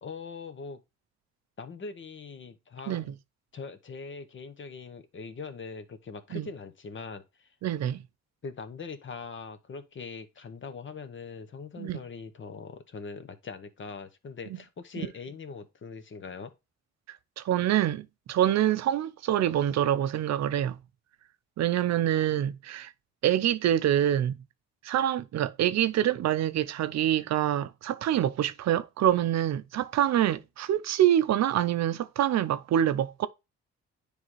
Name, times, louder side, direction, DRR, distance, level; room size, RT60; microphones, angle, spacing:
voice 1, 0.0-0.8 1.6-3.0 3.5-7.6 8.4-16.5, left 5 dB, 40° left, 1.0 m, -41 dB
voice 2, 7.6-8.0 11.8-12.0 17.1-20.8 21.6-22.9 23.2-24.3 24.8-33.3, right 11 dB, 60° right, 0.5 m, -26 dB
9.6 x 3.4 x 3.0 m
cardioid pair, 90°, 30 cm